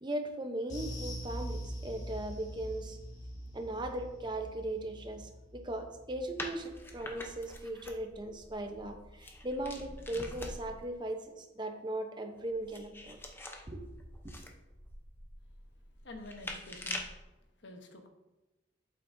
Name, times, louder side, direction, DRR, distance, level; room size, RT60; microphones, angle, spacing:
voice 1, 0.0-3.0 3.5-13.2 13.7-14.0 14.2-14.3, right 1 dB, 25° right, 5 dB, 0.8 m, -38 dB
sound 1, 0.7-9.4 9.6-9.9 10.3-10.4, equal, 40° left, 1.9 m, -44 dB
sound 2, 6.4-10.9 12.3-17.2, left 1 dB, 10° left, 0.7 m, -45 dB
voice 2, 16.0-17.0 17.6-18.1, left 2 dB, 70° left, 4 dB, 1.1 m, -48 dB
8.4 x 7.6 x 2.7 m, 1.0 s
head